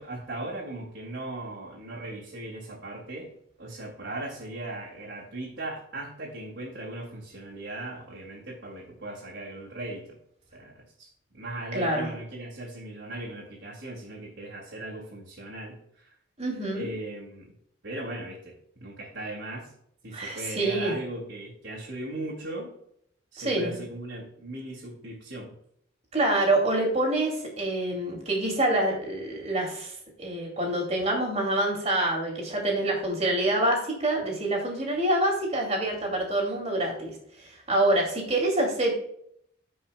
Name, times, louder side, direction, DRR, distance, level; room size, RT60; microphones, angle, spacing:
voice 1, 0.0-3.3 3.6-10.2 10.5-16.1 16.7-17.5 17.8-19.7 20.0-22.7 23.3-25.6, right 1 dB, 55° right, -6 dB, 2.2 m, -38 dB
voice 2, 11.7-12.1 16.4-16.9 20.1-20.9 23.4-23.8 26.1-29.9 30.2-38.9, right 1 dB, 30° right, 0 dB, 2.5 m, -26 dB
15.5 x 5.4 x 2.3 m, 0.70 s
head